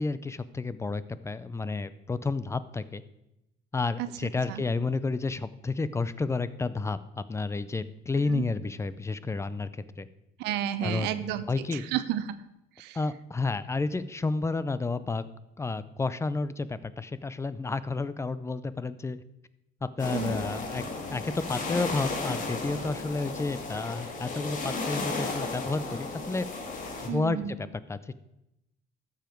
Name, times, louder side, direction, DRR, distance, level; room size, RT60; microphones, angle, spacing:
voice 1, 0.0-3.0 3.7-10.1 10.8-11.8 12.9-15.2 15.6-19.2 19.8-20.8 21.1-26.5 27.0-28.1, left 3 dB, 15° left, 15 dB, 0.5 m, -31 dB
voice 2, 10.4-11.4 11.7-12.2 12.8-13.0 20.1-20.4 27.1-27.5, right 11 dB, 90° right, 12 dB, 0.7 m, -31 dB
sound 1, 20.0-27.1, left 3 dB, 50° left, 2.1 m, -34 dB
13.0 x 7.3 x 4.5 m, 0.88 s
cardioid pair, 110°, 17 cm